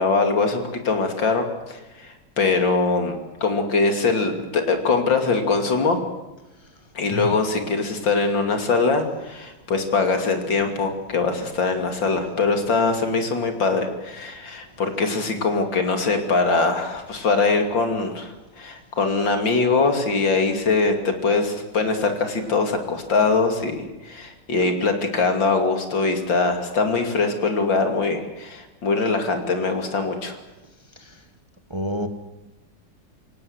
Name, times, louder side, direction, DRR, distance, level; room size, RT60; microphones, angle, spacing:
voice 1, 0.0-6.0 6.9-30.4, left 4 dB, 80° left, 5 dB, 3.4 m, -22 dB
voice 2, 31.7-32.1, equal, 15° right, 7 dB, 1.4 m, -29 dB
27.5 x 17.5 x 8.0 m, 1.1 s
omnidirectional pair, 2.0 m